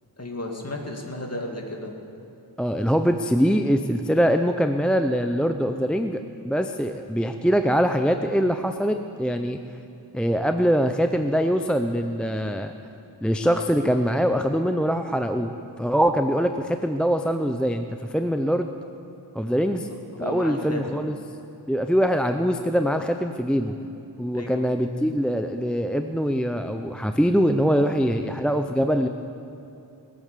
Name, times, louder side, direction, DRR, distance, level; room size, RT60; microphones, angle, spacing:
voice 1, 0.2-1.9 19.8-21.0 24.3-24.6, left 1 dB, 35° left, 1 dB, 2.1 m, -34 dB
voice 2, 2.6-9.6 10.1-12.7 13.2-15.5 15.8-18.7 19.3-19.9 20.2-21.2 21.7-23.7 24.2-29.1, equal, ahead, 6 dB, 0.5 m, -23 dB
20.5 x 8.8 x 6.7 m, 2.8 s
wide cardioid pair, 75°, 43 cm